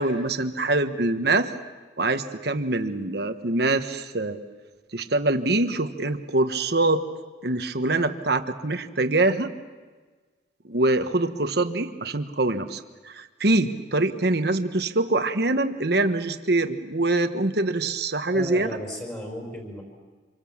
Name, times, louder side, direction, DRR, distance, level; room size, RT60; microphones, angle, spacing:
voice 1, 0.0-1.5 2.0-4.4 4.9-7.0 7.4-9.5 10.6-18.7, right 2 dB, 55° right, 8 dB, 1.3 m, -24 dB
voice 2, 18.3-19.8, equal, 15° left, 0 dB, 4.8 m, -34 dB
26.5 x 24.5 x 7.3 m, 1.4 s
head